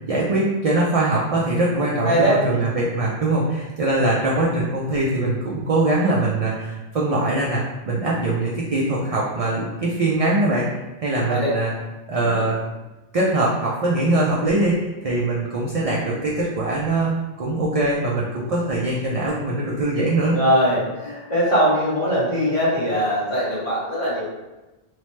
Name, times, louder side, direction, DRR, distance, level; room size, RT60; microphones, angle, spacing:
voice 1, 0.1-7.6 7.9-10.7 11.0-11.7 12.1-12.6 13.1-20.3, right 2 dB, 65° right, -5 dB, 0.3 m, -22 dB
voice 2, 2.0-2.6 11.3-11.6 12.1-12.5 20.3-24.2, equal, 35° left, -7 dB, 0.8 m, -21 dB
2.9 x 2.0 x 3.0 m, 1.1 s
omnidirectional pair, 1.1 m